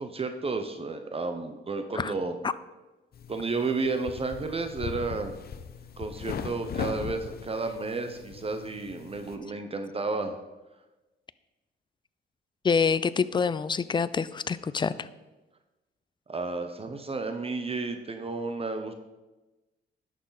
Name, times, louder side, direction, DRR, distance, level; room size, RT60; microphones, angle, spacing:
voice 1, 0.0-2.3 3.3-5.4 6.0-10.4 16.3-18.9, right 3 dB, 30° right, 7 dB, 0.8 m, -32 dB
sound 1, 3.1-9.4, left 7 dB, 50° left, 0.7 m, -39 dB
voice 2, 12.6-15.1, left 5 dB, 25° left, 16 dB, 0.4 m, -26 dB
11.0 x 6.5 x 4.1 m, 1.1 s
cardioid pair, 90°, 20 cm